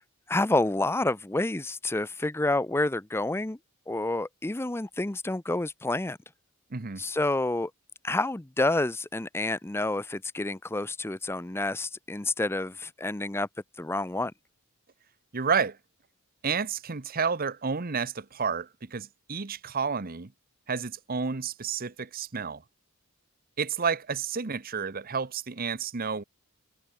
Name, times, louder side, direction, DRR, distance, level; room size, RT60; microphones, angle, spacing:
voice 1, 0.3-3.6 3.9-6.2 7.0-7.7 8.0-13.5 13.8-14.3, left 2 dB, 10° left, 0.5 m, -28 dB
voice 2, 6.7-7.0 15.3-15.8 16.4-20.3 20.7-22.6 23.6-26.2, right 5 dB, 40° right, 0.9 m, -30 dB
head